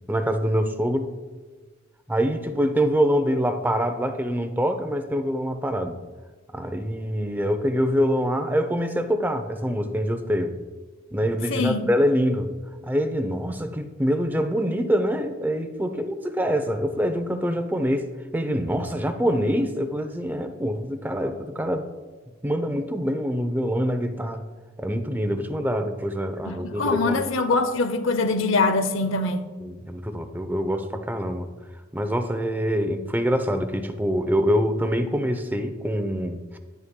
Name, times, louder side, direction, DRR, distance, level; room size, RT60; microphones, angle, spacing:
voice 1, 0.1-1.1 2.1-6.0 6.5-10.6 11.1-12.5 12.8-21.9 22.4-24.4 24.8-27.2 29.6-31.5 31.9-36.6, equal, 10° right, 8 dB, 0.6 m, -25 dB
voice 2, 11.5-11.9 26.4-29.5, left 3 dB, 70° left, 10 dB, 0.8 m, -23 dB
10.5 x 9.8 x 2.2 m, 1.3 s
head